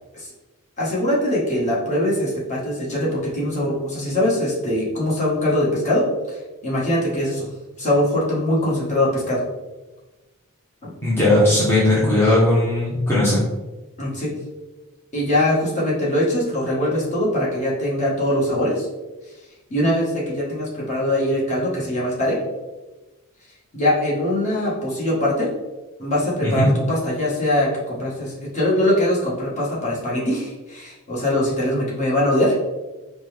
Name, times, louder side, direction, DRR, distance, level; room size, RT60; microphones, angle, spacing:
voice 1, 0.8-6.4 6.6-7.5 7.8-9.4 10.8-10.9 14.0-14.4 15.1-18.9 19.7-22.4 23.7-25.5 26.0-32.5, left 1 dB, 35° left, -6 dB, 1.3 m, -22 dB
voice 2, 11.0-13.4 26.4-26.7, left 1 dB, 10° left, -9 dB, 0.8 m, -18 dB
5.1 x 2.2 x 3.3 m, 1.1 s
head